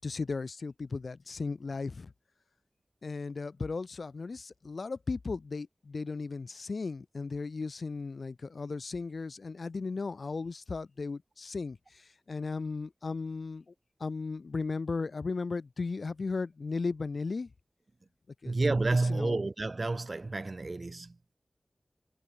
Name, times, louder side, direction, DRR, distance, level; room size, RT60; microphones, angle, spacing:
voice 1, 0.0-2.1 3.0-13.7 14.0-17.5 18.4-18.6 19.0-19.4, left 4 dB, 75° left, 4.6 m, -36 dB
voice 2, 18.4-21.4, right 3 dB, 50° right, 1.0 m, -30 dB
wide cardioid pair, 65°, 0 cm